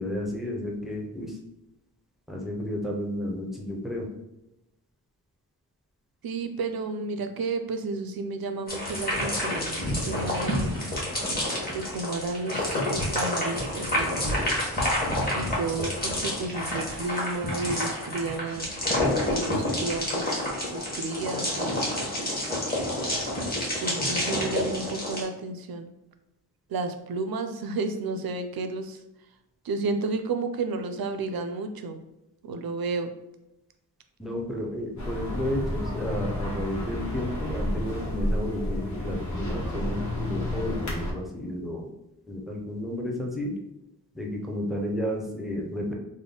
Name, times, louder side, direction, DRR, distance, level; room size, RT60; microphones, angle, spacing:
voice 1, 0.0-1.4 2.3-4.1 34.2-41.9 42.3-43.5 44.1-45.9, left 1 dB, ahead, 0 dB, 0.5 m, -32 dB
voice 2, 6.2-10.9 11.7-14.3 15.3-18.7 19.3-21.9 23.8-25.9 26.7-29.0 29.6-32.0 32.4-33.1, right 3 dB, 70° right, 7 dB, 0.5 m, -32 dB
sound 1, 8.7-25.2, left 1 dB, 25° left, 1.1 m, -28 dB
sound 2, 35.0-41.1, left 1 dB, 50° left, 1.1 m, -31 dB
3.5 x 2.1 x 3.7 m, 0.92 s
wide cardioid pair, 140°, 38 cm